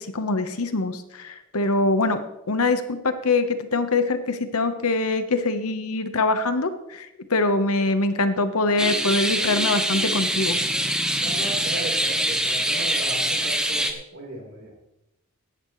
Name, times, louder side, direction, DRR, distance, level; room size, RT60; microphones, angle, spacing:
voice 1, 0.0-2.2 2.5-10.6, left 3 dB, 80° left, 9 dB, 1.1 m, -23 dB
sound 1, 8.8-13.9, right 1 dB, 5° right, 0.9 m, -24 dB
voice 2, 11.2-14.8, right 2 dB, 55° right, -1 dB, 4.0 m, -36 dB
16.5 x 11.5 x 3.2 m, 0.90 s
head